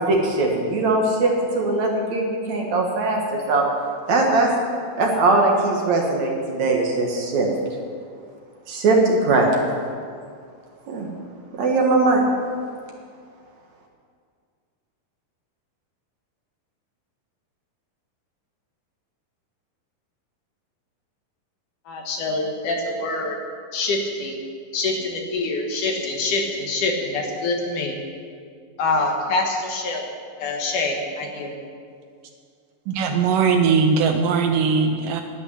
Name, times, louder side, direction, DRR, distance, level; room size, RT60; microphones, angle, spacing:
voice 1, 0.0-3.7 4.1-4.5 5.0-7.5 8.7-9.5 10.9-11.1 11.6-12.2, right 2 dB, 55° right, 0 dB, 2.5 m, -20 dB
voice 2, 21.9-23.4 23.7-24.4 24.7-28.0 28.8-30.0 30.4-31.6, left 2 dB, 65° left, 1 dB, 2.8 m, -25 dB
voice 3, 32.9-35.2, right 5 dB, 75° right, 5 dB, 2.2 m, -20 dB
11.0 x 9.1 x 9.9 m, 2.2 s
omnidirectional pair, 4.2 m